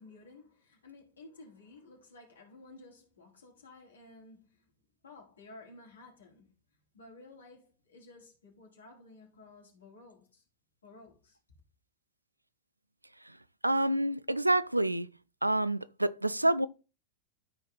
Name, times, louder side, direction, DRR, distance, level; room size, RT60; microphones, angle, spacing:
voice 1, 0.0-4.7 5.0-6.5 6.9-10.4 10.8-11.4, left 2 dB, 70° left, 3.3 m, -54 dB
voice 2, 13.6-15.1 15.4-16.7, right 1 dB, 85° right, 0.4 m, -27 dB
13.5 x 4.5 x 3.9 m
figure-of-eight pair, 90°, 0 cm